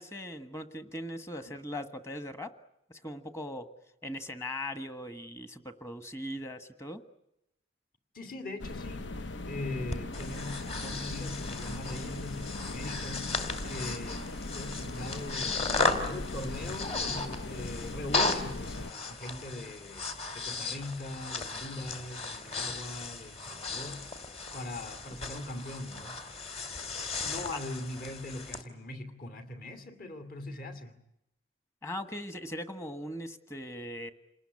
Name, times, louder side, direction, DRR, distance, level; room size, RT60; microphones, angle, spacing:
voice 1, 0.0-2.5 2.9-3.7 4.0-7.0 31.8-34.1, left 1 dB, 15° left, 10 dB, 1.4 m, -39 dB
voice 2, 8.1-26.5 27.2-31.0, left 2 dB, 50° left, 9 dB, 2.7 m, -41 dB
sound 1, 8.6-18.9, left 2 dB, 75° left, 1.0 m, -39 dB
Breathing, 9.9-28.6, left 3 dB, 35° left, 2.5 m, -36 dB
28.5 x 19.5 x 9.7 m, 0.84 s
head